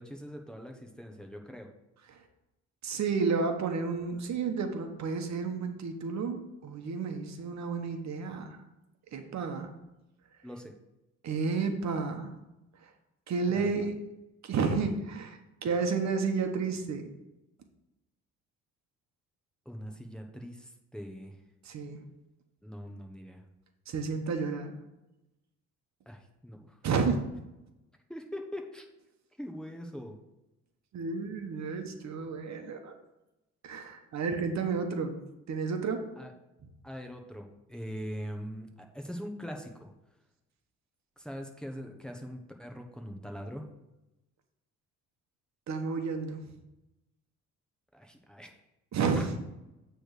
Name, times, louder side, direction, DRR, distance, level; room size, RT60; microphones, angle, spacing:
voice 1, 0.0-1.7 10.4-10.7 13.5-13.6 19.6-21.3 22.6-23.4 26.1-26.8 28.1-28.9 29.4-30.2 36.2-36.3 36.8-39.9 41.2-43.7 47.9-48.5, equal, 5° left, 3 dB, 1.0 m, -42 dB
voice 2, 2.8-8.5 9.1-9.7 11.2-12.3 12.8-12.9 13.3-14.0 14.4-17.0 21.6-22.0 23.9-24.7 26.8-27.2 30.9-32.9 33.6-35.2 35.5-36.1 45.7-46.5 48.9-49.3, right 5 dB, 65° right, 6 dB, 1.1 m, -31 dB
8.6 x 3.4 x 6.5 m, 0.96 s
cardioid pair, 90°, 30 cm